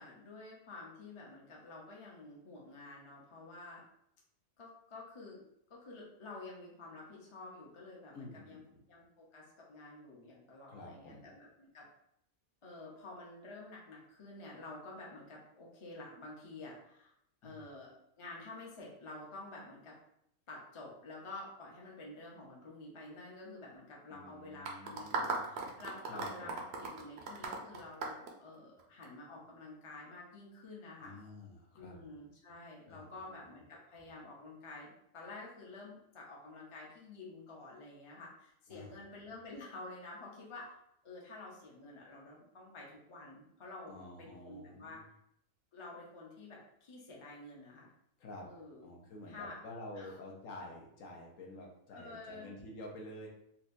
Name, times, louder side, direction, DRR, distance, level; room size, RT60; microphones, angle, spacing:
voice 1, 0.0-3.8 4.6-5.4 5.7-8.6 8.9-11.9 12.6-17.1 17.4-19.9 20.5-31.2 31.8-40.7 41.0-45.0 45.7-47.9 48.4-48.9 49.3-49.6 49.9-50.2 51.9-52.5, left 2 dB, 35° left, -3 dB, 0.5 m, -50 dB
voice 2, 8.1-8.8 10.7-11.3 17.4-17.7 24.1-25.5 26.1-26.6 31.0-31.9 32.9-33.3 38.7-39.0 43.9-45.1 48.2-48.5 48.8-53.3, left 1 dB, 70° left, -1 dB, 1.1 m, -49 dB
sound 1, 24.7-29.1, right 3 dB, 60° right, 0.7 m, -38 dB
4.2 x 2.2 x 2.6 m, 0.75 s
omnidirectional pair, 1.5 m